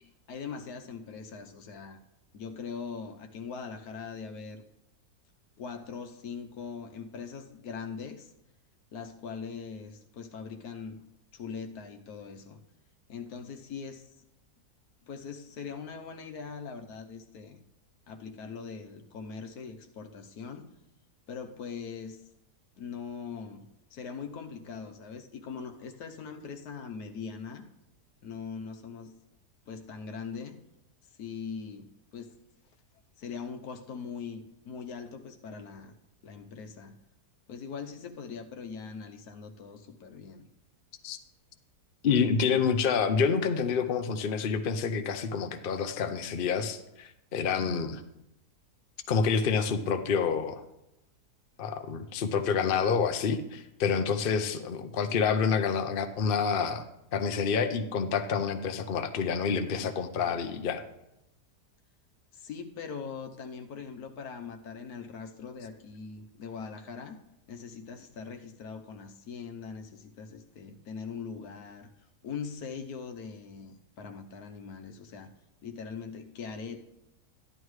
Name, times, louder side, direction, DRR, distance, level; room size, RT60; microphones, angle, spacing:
voice 1, 0.0-2.0 2.3-4.6 5.6-8.3 8.9-11.0 11.3-12.6 13.1-14.0 15.1-17.6 18.1-20.6 21.3-22.2 22.8-23.6 23.9-27.6 28.2-29.2 29.7-30.5 31.2-32.3 33.2-35.9 36.2-36.9 37.5-40.5 62.3-67.2 67.5-71.9 72.2-75.3 75.6-76.8, left 5 dB, 70° left, 6 dB, 1.3 m, -41 dB
voice 2, 42.0-48.0 49.1-50.6 51.6-56.8 57.1-60.8, left 6 dB, 55° left, 7 dB, 0.6 m, -28 dB
13.5 x 11.0 x 3.2 m, 0.88 s
omnidirectional pair, 1.7 m